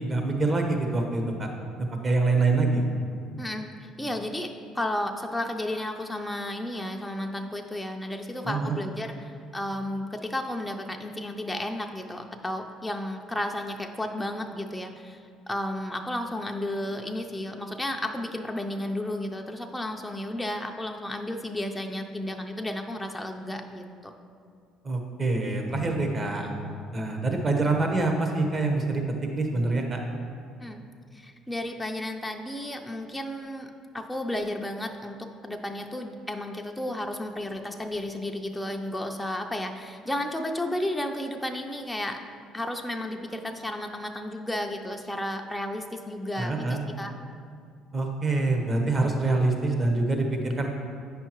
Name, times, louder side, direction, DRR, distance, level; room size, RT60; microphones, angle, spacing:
voice 1, 0.0-1.5 1.8-2.8 8.4-8.7 24.8-26.5 26.9-29.0 29.4-30.0 46.4-46.8 47.9-50.7, right 3 dB, 35° right, 3 dB, 1.1 m, -25 dB
voice 2, 3.4-15.2 15.5-24.1 30.6-30.8 31.1-33.7 33.9-35.2 35.4-42.2 42.5-47.1 49.0-49.2, left 1 dB, 10° left, 3 dB, 0.5 m, -33 dB
8.4 x 5.5 x 3.0 m, 2.2 s
supercardioid pair, 75°, 0 cm